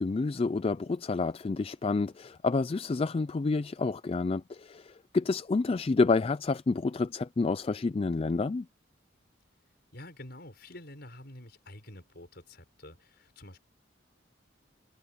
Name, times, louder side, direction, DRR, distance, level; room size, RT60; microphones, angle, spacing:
voice 1, 0.0-8.7, left 3 dB, 30° left, 0.3 m, -29 dB
voice 2, 9.9-13.6, left 1 dB, 55° left, 6.5 m, -48 dB
head